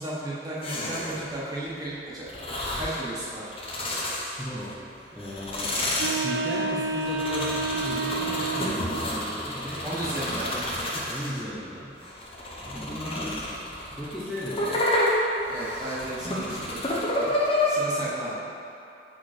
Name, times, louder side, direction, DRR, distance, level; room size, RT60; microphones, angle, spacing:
voice 1, 0.0-2.3 2.8-3.5 9.8-10.9 15.5-17.3 17.7-18.4, right 1 dB, 20° right, -8 dB, 1.4 m, -34 dB
sound 1, 0.6-1.3 2.3-3.0 3.5-4.7 5.2-11.5 12.0-17.7, left 1 dB, 35° left, 0.9 m, -30 dB
voice 2, 4.4-10.0 11.1-11.9 12.6-13.5 13.9-14.8, equal, ahead, -10 dB, 0.8 m, -36 dB
sound 2, 6.0-8.9, right 3 dB, 80° right, 0.4 m, -30 dB
5.9 x 5.0 x 4.4 m, 2.7 s
head